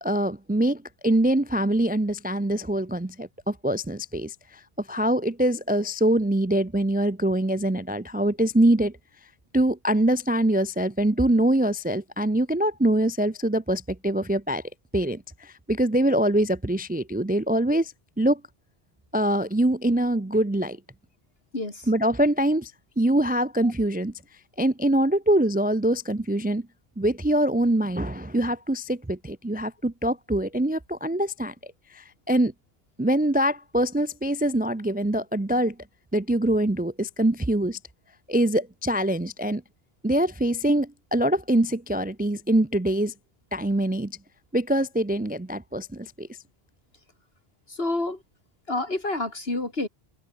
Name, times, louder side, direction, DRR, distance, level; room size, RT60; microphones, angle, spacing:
voice 1, 0.0-8.9 9.5-14.6 14.9-18.4 19.1-20.8 21.9-24.1 24.6-26.7 27.0-31.5 31.9-32.5 33.0-35.8 36.1-37.8 38.3-39.6 40.0-43.1 43.5-44.2 44.5-46.3, right 1 dB, 10° right, 0.4 m, -24 dB
voice 2, 21.5-21.9 23.6-23.7 47.7-48.2 48.7-49.9, left 2 dB, 75° left, 4.5 m, -29 dB
open air
omnidirectional pair, 1.0 m